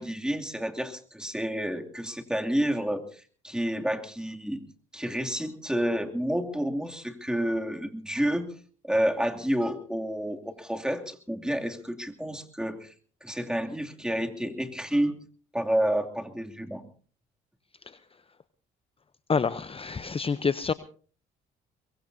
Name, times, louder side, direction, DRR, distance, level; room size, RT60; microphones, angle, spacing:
voice 1, 0.0-4.6 4.9-8.5 8.8-12.9 13.2-15.2 15.5-16.8, equal, 5° right, 3 dB, 2.7 m, -29 dB
voice 2, 19.3-20.7, left 5 dB, 25° left, 14 dB, 0.8 m, -27 dB
23.5 x 22.0 x 2.8 m, 0.41 s
supercardioid pair, 65°, 21 cm